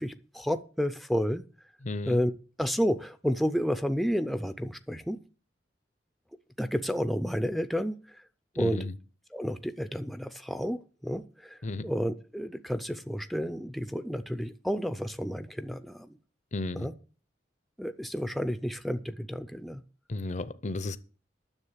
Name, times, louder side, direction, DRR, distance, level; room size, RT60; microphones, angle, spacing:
voice 1, 0.0-1.5 2.1-2.3 2.6-5.2 6.6-8.2 8.6-8.8 9.3-11.6 11.8-16.2 16.7-16.9 17.8-19.8, equal, ahead, 0.5 m, -31 dB
voice 2, 1.8-2.2 8.5-8.9 11.6-11.9 16.5-16.9 20.1-21.0, left 2 dB, 40° left, 0.6 m, -33 dB
9.8 x 7.3 x 7.4 m
head